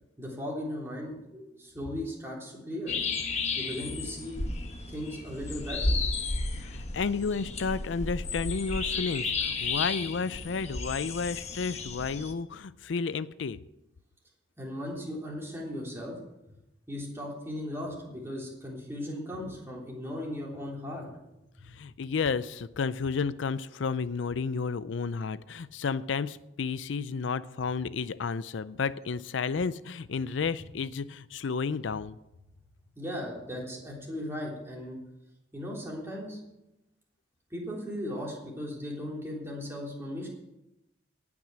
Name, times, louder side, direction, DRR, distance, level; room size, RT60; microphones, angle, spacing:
voice 1, 0.2-2.9 3.5-4.4 4.9-6.0 14.6-16.2 16.9-21.1 21.6-21.7 32.9-35.0 35.5-36.4 37.5-40.3, left 1 dB, 15° right, -3 dB, 3.5 m, -37 dB
sound 1, 2.9-12.3, left 3 dB, 35° left, 1.2 m, -33 dB
voice 2, 6.6-13.6 21.7-32.2, left 5 dB, 80° left, 16 dB, 0.5 m, -32 dB
18.0 x 6.1 x 7.6 m, 0.93 s
head